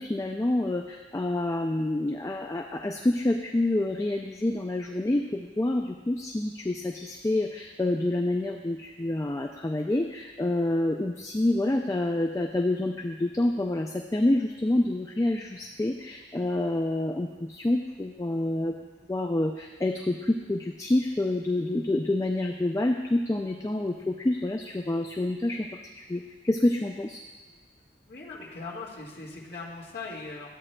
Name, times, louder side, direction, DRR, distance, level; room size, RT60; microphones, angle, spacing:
voice 1, 0.0-18.8 19.1-25.7 26.0-27.2, left 1 dB, 15° left, 2 dB, 0.3 m, -27 dB
voice 2, 28.1-30.5, left 3 dB, 55° left, -6 dB, 1.8 m, -40 dB
13.0 x 8.6 x 2.2 m, 1.3 s
head